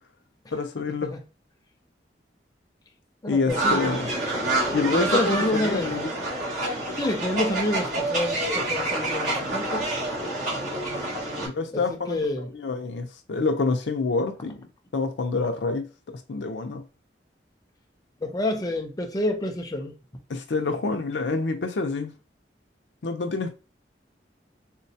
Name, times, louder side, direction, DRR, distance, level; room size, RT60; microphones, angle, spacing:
voice 1, 0.5-1.1 3.3-4.1 4.7-6.1 10.6-10.7 11.4-12.2 12.5-14.7 14.9-16.9 20.3-22.1 23.0-23.5, left 3 dB, 85° left, 0.5 m, -27 dB
voice 2, 3.2-4.0 4.9-5.9 6.9-9.9 11.7-12.5 18.2-19.9, left 1 dB, 20° left, 0.5 m, -28 dB
sound 1, 3.5-11.5, right 2 dB, 45° right, 1.6 m, -27 dB
3.9 x 2.2 x 2.7 m
head